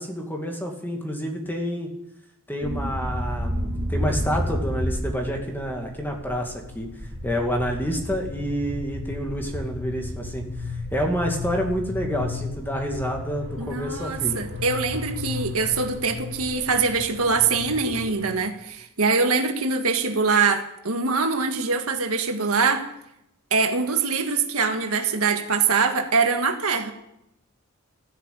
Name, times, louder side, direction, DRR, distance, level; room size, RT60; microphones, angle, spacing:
voice 1, 0.0-1.9 2.5-6.9 7.2-14.4, equal, 10° left, 2 dB, 2.3 m, -28 dB
sound 1, 2.6-18.4, left 1 dB, 50° right, 2.6 m, -32 dB
voice 2, 13.6-22.9 23.5-26.9, right 4 dB, 80° right, 5 dB, 1.8 m, -23 dB
14.0 x 10.0 x 8.7 m, 0.82 s
head